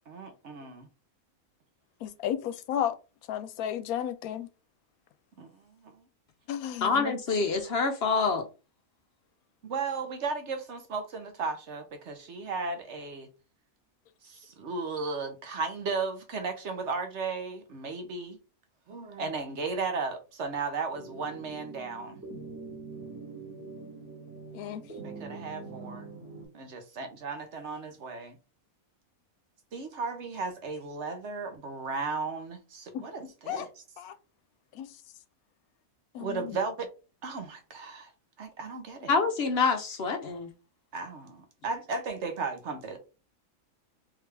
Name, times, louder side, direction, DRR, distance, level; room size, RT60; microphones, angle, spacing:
voice 1, 0.1-0.9 5.4-6.0 9.6-13.3 14.2-18.4 18.9-22.2 25.0-26.1 26.5-28.4 29.7-33.7 36.2-36.9 37.2-38.1 38.4-39.1 40.9-43.0, right 4 dB, 60° right, 1.0 m, -35 dB
voice 2, 2.0-3.0 3.3-4.5 6.5-7.1 24.5-24.8 32.9-33.0 33.5-33.7 34.0-34.1 34.8-34.9 36.2-36.6, left 10 dB, 85° left, 1.0 m, -33 dB
voice 3, 6.8-8.5 39.1-40.5, left 4 dB, 55° left, 0.8 m, -26 dB
sound 1, 20.9-26.5, right 4 dB, 10° right, 1.9 m, -44 dB
3.6 x 3.3 x 3.3 m
omnidirectional pair, 1.5 m